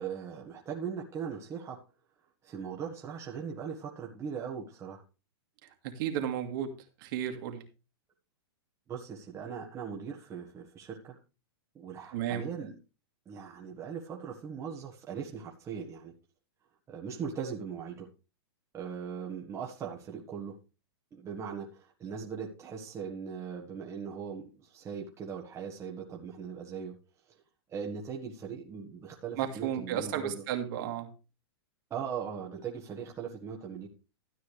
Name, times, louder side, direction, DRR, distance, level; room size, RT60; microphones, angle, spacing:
voice 1, 0.0-1.8 2.4-5.0 8.9-11.1 11.7-12.8 13.2-16.1 16.9-18.1 18.7-20.5 21.1-26.9 27.7-30.4 31.9-33.9, right 7 dB, 20° right, -1 dB, 1.6 m, -39 dB
voice 2, 5.8-6.7 7.0-7.6 12.1-12.4 29.4-31.1, right 10 dB, 50° right, 5 dB, 2.2 m, -33 dB
13.0 x 9.0 x 3.4 m, 0.31 s
hypercardioid pair, 135°, 13 cm